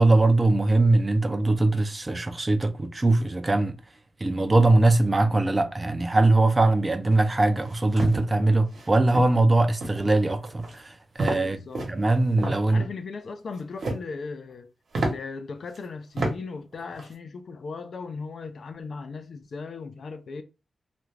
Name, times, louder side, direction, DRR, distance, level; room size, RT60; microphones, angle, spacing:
voice 1, 0.0-3.8 4.2-11.6 11.9-12.8, right 2 dB, 25° right, 0.4 m, -21 dB
sound 1, 7.6-8.2 8.7-8.9 9.1-9.4 9.8-10.1 10.4-10.8 11.2-11.4 11.7-12.6 13.5-14.1 14.5-14.6 14.9-15.1 15.7-15.8 16.2-16.3 16.7-17.1, right 2 dB, 70° right, 0.9 m, -29 dB
voice 2, 11.3-11.9 12.6-14.7 15.1-20.4, left 4 dB, 65° left, 0.4 m, -37 dB
2.5 x 2.2 x 3.1 m
wide cardioid pair, 100°, 0 cm